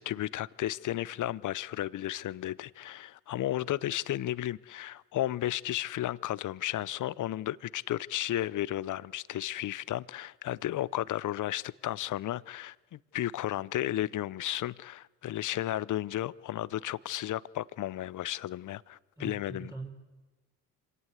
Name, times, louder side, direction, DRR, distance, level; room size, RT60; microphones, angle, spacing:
voice 1, 0.0-19.7, left 13 dB, 55° left, 21 dB, 0.8 m, -33 dB
voice 2, 19.2-19.9, right 3 dB, 10° right, 0 dB, 4.3 m, -42 dB
25.5 x 18.0 x 8.2 m, 1.2 s
hypercardioid pair, 60°, 36 cm